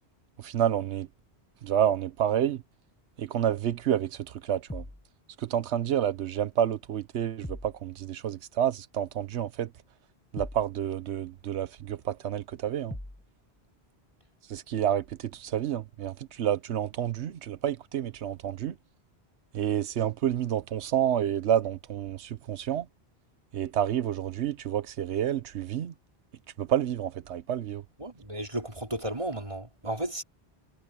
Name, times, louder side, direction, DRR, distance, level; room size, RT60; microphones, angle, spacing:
voice 1, 0.4-1.1 1.6-2.6 3.2-4.8 5.4-9.7 10.3-13.0 14.5-18.7 19.5-22.9 23.5-25.9 26.6-27.8, right 10 dB, 90° right, 1.1 m, -29 dB
sound 1, 4.7-5.1 7.4-7.8 10.3-10.7 12.9-13.3, left 1 dB, 10° left, 0.9 m, -40 dB
voice 2, 28.0-30.2, right 1 dB, 30° right, 3.4 m, -34 dB
omnidirectional pair, 1.1 m